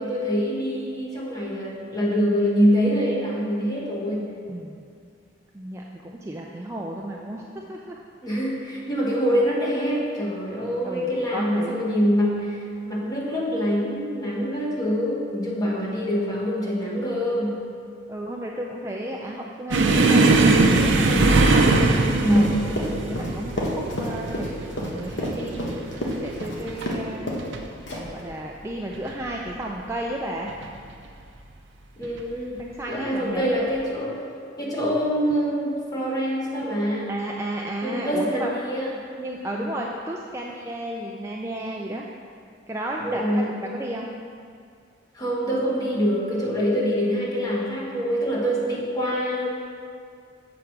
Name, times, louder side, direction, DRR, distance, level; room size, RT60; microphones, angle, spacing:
voice 1, 0.0-4.3 8.2-17.6 22.2-22.7 32.0-34.2 34.6-37.1 37.8-38.9 39.6-39.7 43.0-43.5 45.1-49.5, equal, 20° left, -5 dB, 1.5 m, -25 dB
voice 2, 4.5-4.8 5.5-8.0 10.8-11.9 18.1-22.5 23.0-25.7 26.2-27.5 28.1-30.5 32.6-33.5 37.1-38.5 39.2-42.0 42.7-44.1, right 1 dB, 15° right, -2 dB, 0.4 m, -33 dB
sound 1, 19.7-26.9 27.2-27.6 27.9-28.1 28.9-29.5 30.5-30.7 32.0-32.2, right 2 dB, 70° right, 0.6 m, -21 dB
Run, 22.3-27.0 27.3-27.5 27.9-28.2, left 1 dB, 65° left, 1.2 m, -29 dB
7.2 x 4.9 x 5.9 m, 2.3 s
head